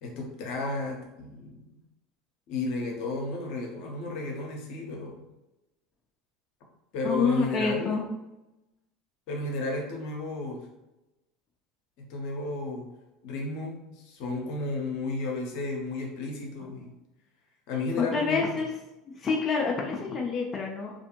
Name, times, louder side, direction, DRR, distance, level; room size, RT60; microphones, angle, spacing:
voice 1, 0.0-1.6 2.5-5.2 6.9-8.0 9.3-10.7 12.0-12.9 13.2-16.9 17.7-18.7, left 3 dB, 60° left, 1 dB, 0.8 m, -33 dB
voice 2, 7.0-8.1 18.1-18.7 19.2-20.9, left 4 dB, 30° left, -1 dB, 0.5 m, -27 dB
2.5 x 2.4 x 2.8 m, 0.94 s
hypercardioid pair, 75°, 0 cm